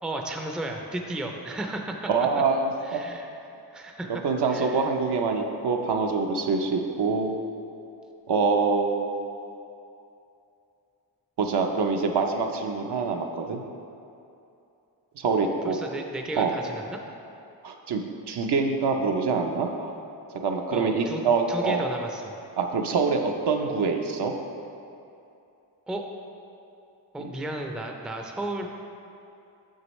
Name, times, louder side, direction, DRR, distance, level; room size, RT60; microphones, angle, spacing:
voice 1, 0.0-2.1 2.9-3.3 3.7-4.2 4.5-4.8 15.6-17.0 20.7-21.2 21.5-22.3 25.9-26.0 27.1-28.7, right 1 dB, ahead, 2 dB, 0.4 m, -33 dB
voice 2, 2.1-3.0 4.2-7.3 8.3-9.2 11.4-13.6 15.2-15.8 16.4-16.5 17.6-18.0 18.3-19.9 20.3-21.9 22.6-24.3, right 4 dB, 65° right, 3 dB, 0.7 m, -25 dB
6.9 x 6.4 x 3.1 m, 2.7 s
cardioid pair, 80°, 43 cm